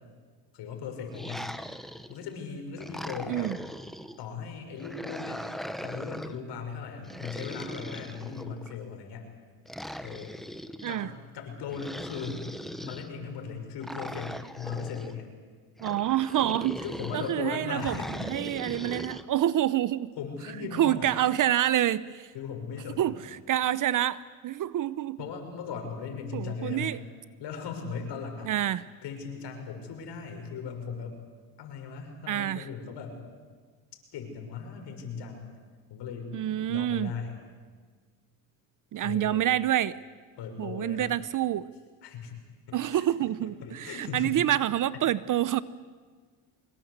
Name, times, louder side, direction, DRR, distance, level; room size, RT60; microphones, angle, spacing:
voice 1, 0.5-1.5 2.1-3.5 4.2-5.5 5.8-9.3 10.0-10.4 10.9-15.3 16.8-18.3 20.2-21.1 22.3-23.1 25.2-27.0 27.4-28.5 29.0-31.2 31.6-33.2 34.1-35.5 35.9-37.4 39.0-39.5 40.4-41.1 42.0-43.1 43.4-44.3, left 5 dB, 60° left, 4 dB, 5.9 m, -38 dB
sound 1, 1.1-2.3 2.8-4.2 4.8-6.4 7.0-8.8 9.7-11.0 11.7-13.1 13.8-15.1 15.8-17.3 17.8-19.2, equal, ahead, 1.1 m, -40 dB
voice 2, 15.8-16.8 17.1-18.0 18.3-20.1 20.7-22.3 23.0-25.2 26.3-27.0 28.5-28.8 32.3-32.7 36.3-37.1 38.9-40.0 40.6-41.7 42.7-45.6, right 12 dB, 45° right, 18 dB, 0.7 m, -27 dB
24.5 x 21.5 x 8.1 m, 1.5 s
supercardioid pair, 100°, 46 cm